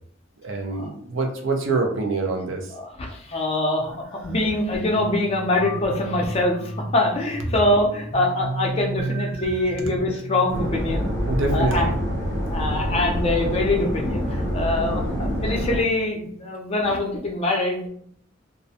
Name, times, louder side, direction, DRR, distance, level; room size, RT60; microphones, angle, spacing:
voice 1, 0.4-2.7 11.3-12.0, right 3 dB, 85° right, 2 dB, 0.6 m, -25 dB
voice 2, 2.7-11.1 11.5-11.9 12.5-17.9, left 2 dB, 30° left, 0 dB, 0.4 m, -24 dB
sound 1, 4.7-15.1, right 1 dB, 35° right, 0.8 m, -34 dB
sound 2, 10.5-15.8, equal, 55° right, 1.1 m, -26 dB
2.4 x 2.1 x 2.7 m, 0.64 s
head